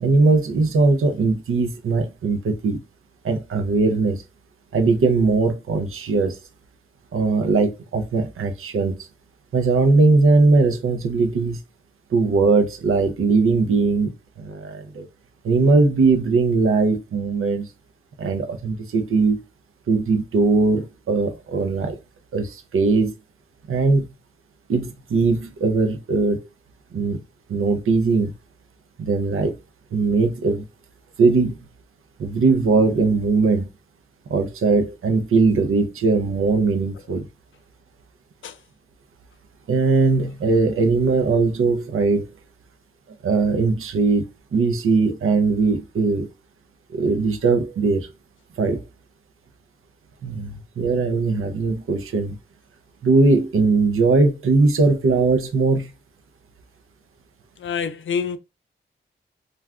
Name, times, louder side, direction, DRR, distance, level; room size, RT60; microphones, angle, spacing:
voice 1, 0.0-2.8 3.2-4.2 4.7-6.4 7.1-8.9 9.5-11.6 12.1-15.1 15.4-17.7 18.2-19.4 19.9-22.0 22.3-23.1 23.7-24.0 24.7-26.4 26.9-27.2 27.5-28.3 29.0-29.5 29.9-30.6 31.2-31.6 32.2-33.7 34.3-37.3 39.7-42.2 43.2-44.3 44.5-46.3 46.9-48.1 48.6-48.8 50.2-52.4 53.0-55.9, right 3 dB, 80° right, 0.6 m, -20 dB
voice 2, 57.6-58.4, left 6 dB, 65° left, 0.4 m, -27 dB
2.4 x 2.3 x 3.3 m
cardioid pair, 60°, 21 cm